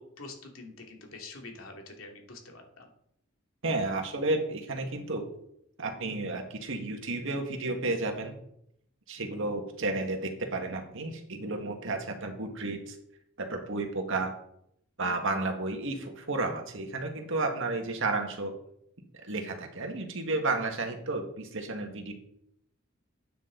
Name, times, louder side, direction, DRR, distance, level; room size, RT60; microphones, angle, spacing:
voice 1, 0.0-2.9, left 3 dB, 75° left, 2 dB, 2.6 m, -46 dB
voice 2, 3.6-5.3 5.8-8.4 9.1-13.0 13.4-14.3 15.0-18.5 19.2-22.1, right 2 dB, 65° right, 4 dB, 2.0 m, -32 dB
12.5 x 9.2 x 4.0 m, 0.74 s
head